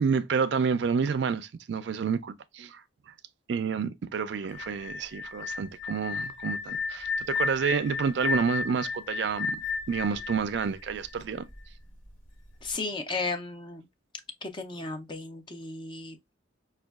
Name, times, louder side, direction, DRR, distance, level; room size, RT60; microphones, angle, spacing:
voice 1, 0.0-2.8 3.5-9.6 9.9-11.4, right 6 dB, 60° right, 0.3 m, -29 dB
sound 1, 4.5-11.4, left 5 dB, 85° left, 1.2 m, -33 dB
voice 2, 12.6-13.8 14.4-16.3, left 3 dB, 25° left, 0.4 m, -35 dB
5.2 x 2.2 x 2.3 m
head